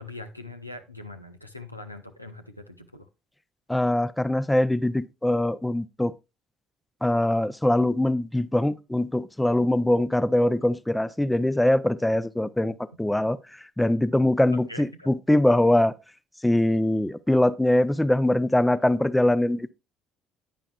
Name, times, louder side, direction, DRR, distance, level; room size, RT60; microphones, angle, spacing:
voice 1, 0.0-3.0 14.7-15.1, left 2 dB, 90° left, 0.8 m, -42 dB
voice 2, 3.7-6.1 7.0-13.4 13.8-15.9 16.4-19.7, left 1 dB, 5° left, 0.6 m, -22 dB
10.5 x 10.0 x 2.4 m
figure-of-eight pair, 55°, 0 cm